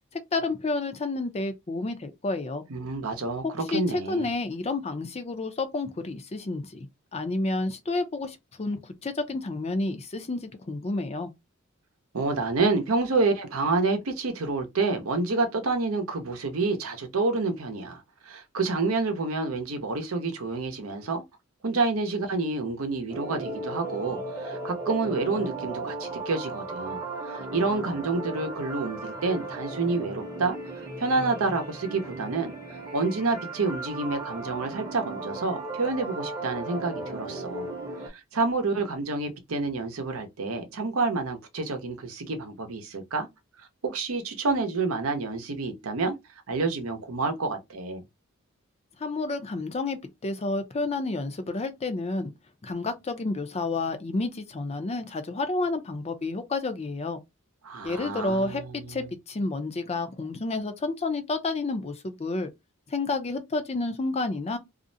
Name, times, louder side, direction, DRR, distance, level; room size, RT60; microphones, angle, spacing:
voice 1, 0.1-2.6 3.7-3.8 4.1-11.3 49.0-52.3 52.6-57.2 57.8-62.5 62.9-64.6, left 3 dB, 30° left, 0.5 m, -30 dB
voice 2, 2.7-4.3 12.1-21.2 21.6-27.0 27.3-30.6 31.0-32.5 32.9-37.7 38.0-43.3 43.8-46.2 46.5-48.0 57.6-59.1, right 3 dB, 80° right, 0.7 m, -28 dB
Parent Process, 23.1-38.1, right 2 dB, 20° right, 0.7 m, -36 dB
2.5 x 2.0 x 2.6 m
head